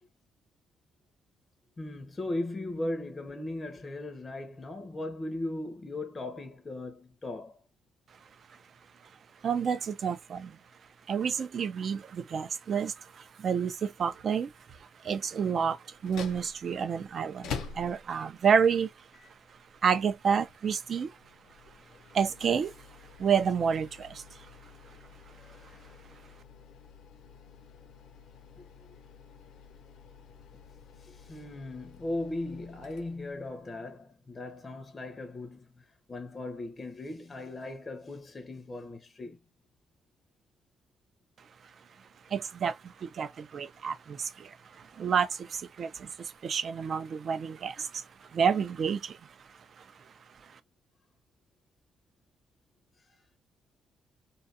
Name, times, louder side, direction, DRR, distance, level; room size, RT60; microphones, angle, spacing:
voice 1, 1.8-7.6 25.4-26.0 28.6-28.7 31.0-39.4, left 2 dB, 30° left, 0.5 m, -38 dB
voice 2, 9.4-10.6 11.1-19.1 19.8-21.2 21.7-21.8 22.1-22.7 23.2-24.5 42.3-49.9 50.4-50.6, right 7 dB, 55° right, 0.4 m, -30 dB
sound 1, 16.0-33.7, left 6 dB, 80° left, 0.5 m, -48 dB
2.6 x 2.3 x 2.5 m
cardioid pair, 90°, 0 cm